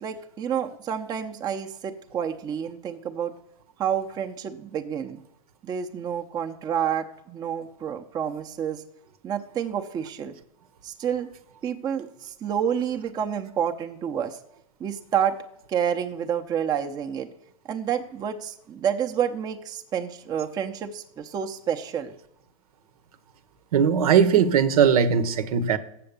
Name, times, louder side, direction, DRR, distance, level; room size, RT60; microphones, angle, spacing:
voice 1, 0.0-3.3 3.8-5.2 5.6-8.8 9.2-10.3 10.8-11.3 11.6-14.4 14.8-15.4 15.7-17.3 17.7-22.1, right 8 dB, 20° right, 4 dB, 0.7 m, -29 dB
voice 2, 23.7-25.8, right 7 dB, 80° right, 12 dB, 0.9 m, -19 dB
7.7 x 7.0 x 6.7 m, 0.78 s
supercardioid pair, 135°, 19 cm